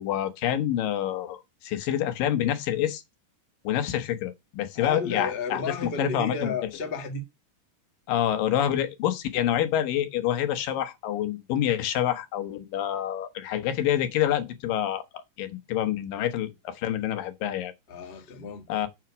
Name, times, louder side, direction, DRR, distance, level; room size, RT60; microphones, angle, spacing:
voice 1, 0.0-3.0 3.6-6.5 8.1-15.0 15.4-17.7 18.7-18.9, left 11 dB, 85° left, 2.8 m, -27 dB
voice 2, 4.7-7.3 17.9-18.7, left 4 dB, 35° left, 0.9 m, -32 dB
7.3 x 6.0 x 6.2 m
omnidirectional pair, 3.9 m